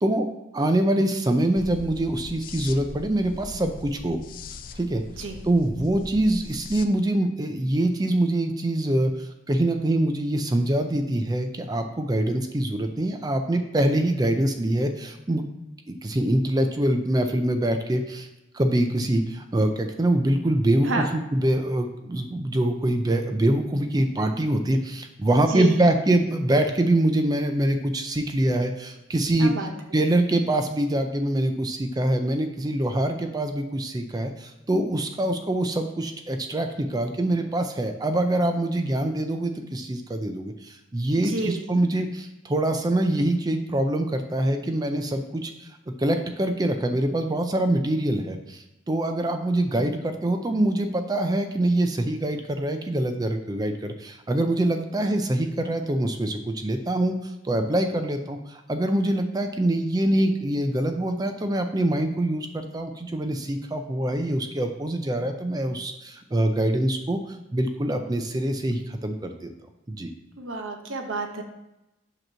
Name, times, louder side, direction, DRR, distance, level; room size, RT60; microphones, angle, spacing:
voice 1, 0.0-4.2 4.8-5.0 5.4-15.4 15.9-18.3 18.5-29.5 29.9-45.7 46.0-69.5 69.9-70.1, right 1 dB, 20° right, 6 dB, 0.4 m, -24 dB
sound 1, 1.5-6.9, left 3 dB, 45° left, 0.4 m, -41 dB
voice 2, 25.5-25.9 29.4-29.7 41.2-41.7 70.3-71.4, right 2 dB, 85° right, 4 dB, 1.0 m, -30 dB
7.8 x 3.0 x 6.1 m, 0.95 s
head